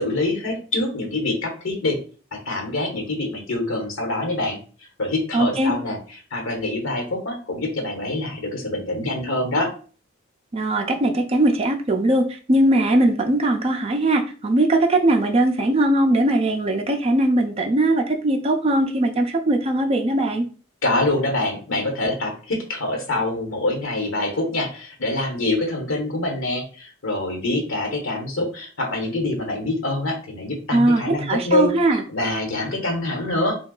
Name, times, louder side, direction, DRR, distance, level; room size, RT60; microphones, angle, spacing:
voice 1, 0.0-2.0 2.3-4.6 5.0-6.0 6.3-9.7 20.8-33.5, left 2 dB, 75° left, 2 dB, 1.1 m, -25 dB
voice 2, 5.3-5.7 10.5-20.5 30.7-32.0, right 1 dB, 30° right, 3 dB, 0.4 m, -20 dB
2.7 x 2.3 x 3.8 m, 0.38 s
head